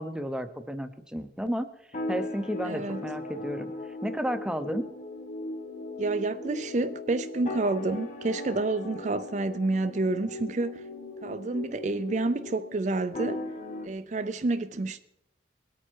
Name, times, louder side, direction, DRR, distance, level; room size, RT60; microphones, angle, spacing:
voice 1, 0.0-1.7 2.1-3.7 4.0-4.8, equal, 5° right, 0.7 m, -32 dB
sound 1, 1.9-13.9, left 2 dB, 40° left, 1.8 m, -38 dB
voice 2, 2.6-3.0 6.0-10.9 11.2-13.4 13.8-15.0, right 2 dB, 40° right, 0.4 m, -29 dB
21.0 x 8.9 x 4.6 m
head